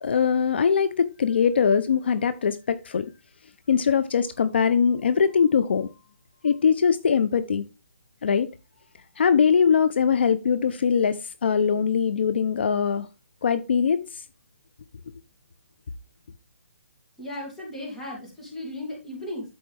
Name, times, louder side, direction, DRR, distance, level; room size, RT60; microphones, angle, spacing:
voice 1, 0.0-3.1 3.7-5.9 6.4-7.7 8.2-8.5 9.2-13.1 13.4-14.2, left 6 dB, 55° left, 0.6 m, -22 dB
voice 2, 17.2-19.5, left 1 dB, 5° left, 2.8 m, -36 dB
12.5 x 4.4 x 3.4 m
hypercardioid pair, 165°, 7 cm